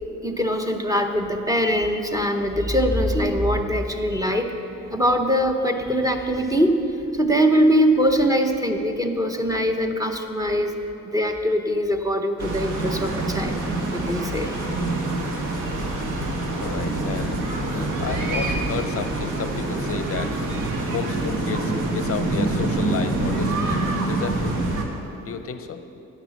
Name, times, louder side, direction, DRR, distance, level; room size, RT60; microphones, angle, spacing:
voice 1, 0.2-4.5 4.9-6.8 7.1-10.7 11.0-13.6 13.9-14.5, equal, 10° right, 4 dB, 0.8 m, -22 dB
sound 1, 12.4-24.8, right 2 dB, 85° right, 1.3 m, -26 dB
voice 2, 16.3-20.5 20.9-24.6 25.3-26.0, left 6 dB, 50° left, 9 dB, 0.5 m, -32 dB
9.9 x 6.1 x 7.1 m, 2.8 s
cardioid pair, 90°, 30 cm